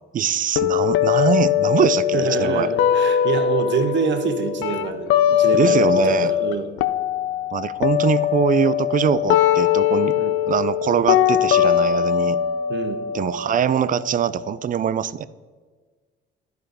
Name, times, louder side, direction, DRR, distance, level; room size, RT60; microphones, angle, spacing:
voice 1, 0.1-2.7 5.5-6.3 7.5-10.2 10.5-12.4 13.1-15.3, right 8 dB, 45° right, 16 dB, 0.4 m, -22 dB
sound 1, 0.6-6.5 6.8-14.6, left 11 dB, 85° left, 0.5 m, -21 dB
voice 2, 2.1-6.7 10.2-10.3 12.7-13.0, right 6 dB, 65° right, 7 dB, 0.9 m, -26 dB
10.5 x 4.7 x 5.1 m, 1.4 s
cardioid pair, 90°, 20 cm